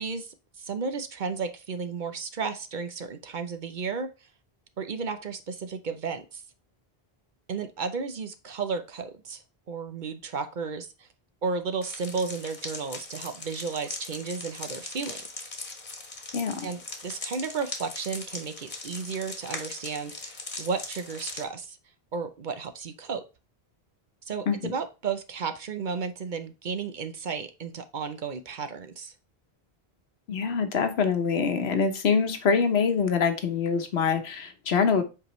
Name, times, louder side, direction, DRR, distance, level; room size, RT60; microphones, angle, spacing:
voice 1, 0.0-4.1 4.8-6.4 7.5-11.1 11.4-15.2 16.6-21.8 22.1-23.2 24.3-29.1, right 5 dB, 55° right, 0.8 m, -33 dB
sound 1, 11.8-21.4, left 3 dB, 45° left, 1.3 m, -40 dB
voice 2, 16.3-16.7 24.5-24.7 30.3-35.0, left 5 dB, 80° left, 1.2 m, -25 dB
7.5 x 4.7 x 3.1 m
omnidirectional pair, 1.0 m